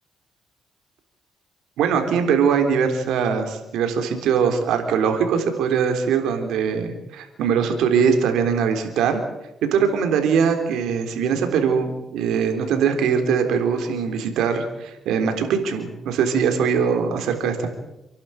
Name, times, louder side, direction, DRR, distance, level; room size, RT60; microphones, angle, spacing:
voice 1, 1.8-9.2 9.7-17.7, right 6 dB, 90° right, 6 dB, 3.6 m, -21 dB
28.5 x 11.5 x 9.3 m, 0.91 s
cardioid pair, 90°, 0 cm